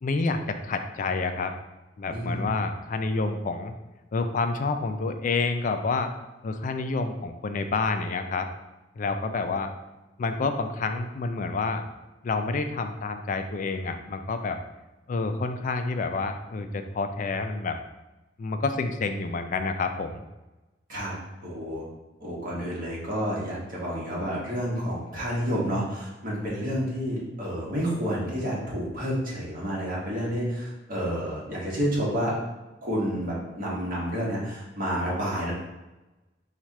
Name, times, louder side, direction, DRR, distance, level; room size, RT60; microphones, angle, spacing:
voice 1, 0.0-1.5 2.0-3.7 4.1-6.1 6.4-8.5 9.0-9.7 10.2-11.9 12.2-14.6 15.1-17.8 18.4-20.2, left 3 dB, 45° left, 7 dB, 0.4 m, -28 dB
voice 2, 2.1-2.5 20.9-21.1 21.4-21.8 22.2-32.3 32.8-35.5, equal, 50° right, -5 dB, 1.4 m, -29 dB
4.6 x 2.4 x 4.2 m, 1.1 s
head